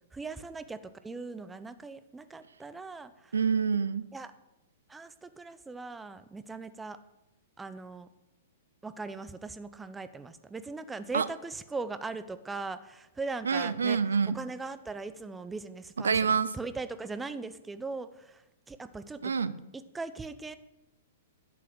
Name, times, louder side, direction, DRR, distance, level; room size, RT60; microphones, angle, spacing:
voice 1, 0.1-3.3 4.1-4.3 4.9-7.0 7.6-8.1 8.8-14.0 14.3-18.4 18.7-19.2 19.9-20.6, right 3 dB, 10° right, 12 dB, 0.8 m, -39 dB
voice 2, 3.3-4.0 11.1-11.3 13.4-14.4 16.0-16.5 19.2-19.5, right 6 dB, 80° right, 16 dB, 0.6 m, -27 dB
11.0 x 7.6 x 7.9 m, 0.91 s
hypercardioid pair, 115°, 0 cm